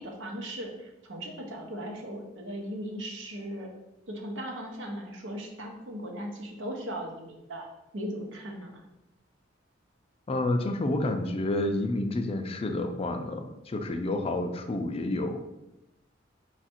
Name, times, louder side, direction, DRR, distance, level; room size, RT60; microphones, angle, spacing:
voice 1, 0.0-3.7 4.1-7.7 7.9-8.8, equal, 75° right, 1 dB, 0.9 m, -38 dB
voice 2, 10.3-15.5, left 2 dB, 30° left, 6 dB, 0.4 m, -29 dB
4.4 x 2.4 x 4.3 m, 0.91 s
head